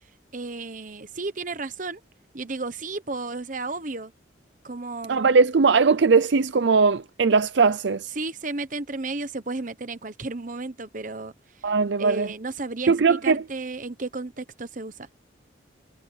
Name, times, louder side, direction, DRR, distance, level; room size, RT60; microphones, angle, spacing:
voice 1, 0.3-2.0 2.3-4.1 4.6-5.3 8.1-11.3 12.0-15.1, right 3 dB, 45° right, 1.1 m, -33 dB
voice 2, 5.1-8.1 11.6-12.3 12.9-13.4, right 4 dB, 70° right, 0.5 m, -19 dB
head